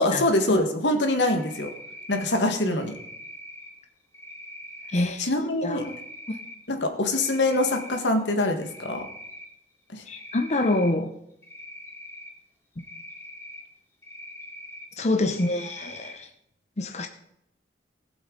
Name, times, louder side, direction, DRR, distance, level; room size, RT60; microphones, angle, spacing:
voice 1, 0.0-1.7 2.1-2.9 5.2-5.8 6.7-9.1 9.9-10.0, left 1 dB, 90° left, 1.7 m, -24 dB
Cricket, 1.4-2.3 2.8-3.7 4.1-5.0 5.7-6.5 7.0-7.9 8.3-9.5 10.1-10.9 11.4-12.3 12.8-13.6 14.0-14.8 15.3-16.1, left 1 dB, 15° left, 2.9 m, -43 dB
voice 2, 4.9-5.3 5.6-5.9 6.3-6.4 10.1-11.1 15.0-16.3 16.8-17.1, left 2 dB, 40° left, 0.8 m, -26 dB
19.0 x 8.0 x 3.9 m
head